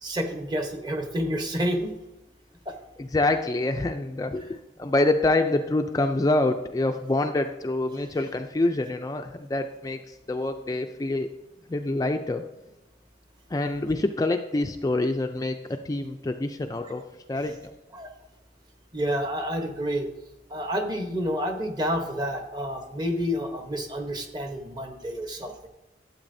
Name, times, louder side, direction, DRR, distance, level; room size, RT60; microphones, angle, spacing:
voice 1, 0.0-1.9 2.7-2.8 17.9-18.1 18.9-20.1 20.5-25.7, equal, 25° right, 5 dB, 0.9 m, -29 dB
voice 2, 3.0-11.3 11.7-12.4 13.5-17.7, left 2 dB, 20° left, 6 dB, 0.3 m, -26 dB
12.0 x 7.9 x 2.6 m, 0.98 s
head